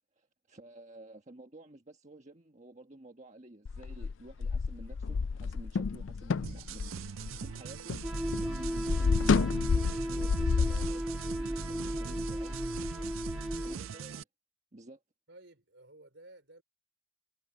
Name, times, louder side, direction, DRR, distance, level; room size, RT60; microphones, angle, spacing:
voice 1, 0.2-7.9 8.3-9.7 10.0-12.8 13.6-14.3 14.7-15.0, right 1 dB, 35° right, 1.4 m, -51 dB
sound 1, 3.7-8.1 8.3-10.9, left 5 dB, 70° left, 0.4 m, -30 dB
sound 2, 6.4-14.2, right 7 dB, 85° right, 0.5 m, -42 dB
sound 3, 8.0-13.8, equal, 5° right, 0.4 m, -35 dB
voice 2, 15.3-16.6, right 2 dB, 65° right, 4.3 m, -54 dB
head